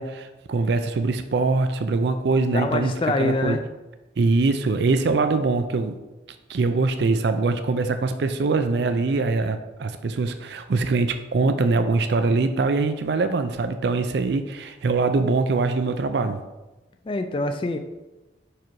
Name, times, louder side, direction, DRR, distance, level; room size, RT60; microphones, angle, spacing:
voice 1, 0.0-3.6 4.2-6.0 6.5-16.4, right 3 dB, 65° right, 8 dB, 0.4 m, -23 dB
voice 2, 2.5-3.6 17.1-17.8, left 2 dB, 30° left, 7 dB, 0.4 m, -25 dB
5.6 x 4.9 x 4.6 m, 1.1 s
head